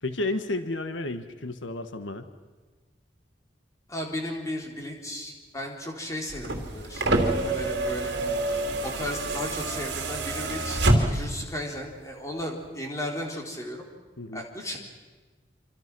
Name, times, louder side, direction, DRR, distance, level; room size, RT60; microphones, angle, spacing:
voice 1, 0.0-2.3 14.2-14.4, left 2 dB, 85° left, 9 dB, 1.3 m, -32 dB
voice 2, 3.9-8.2 8.8-13.9 14.3-14.8, left 1 dB, 15° left, 1 dB, 3.7 m, -35 dB
sound 1, 6.3-11.4 12.6-12.7, right 2 dB, 65° right, 3.1 m, -27 dB
27.0 x 25.5 x 6.1 m, 1.3 s
head